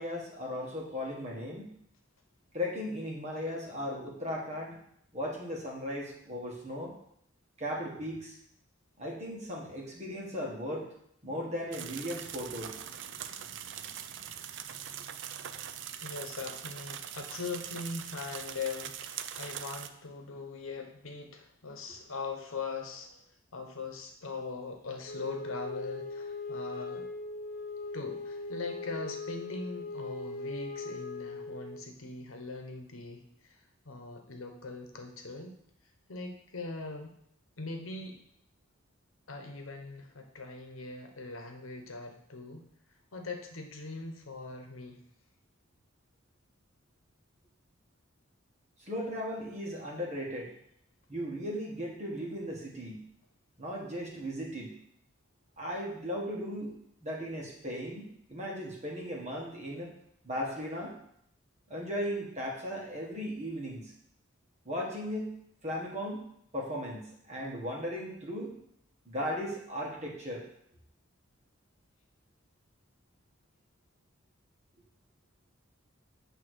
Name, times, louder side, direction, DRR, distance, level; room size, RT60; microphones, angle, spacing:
voice 1, 0.0-1.7 2.5-4.7 5.1-6.9 7.6-8.4 9.0-10.9 11.2-12.8 48.9-50.5 51.1-53.0 53.6-54.7 55.6-59.9 60.2-60.9 61.7-63.9 64.6-66.2 66.5-68.5 69.0-70.4, equal, 35° right, -3 dB, 1.5 m, -37 dB
sound 1, 11.7-19.9, right 9 dB, 60° right, 0.4 m, -42 dB
voice 2, 16.0-23.2 23.5-27.1 27.9-35.6 36.1-37.2 37.6-38.2 39.3-42.7 43.1-45.0, left 4 dB, 75° left, 4 dB, 1.0 m, -41 dB
Wind instrument woodwind instrument, 25.0-31.8, left 3 dB, 45° left, 0.6 m, -40 dB
8.8 x 3.0 x 6.3 m, 0.72 s
head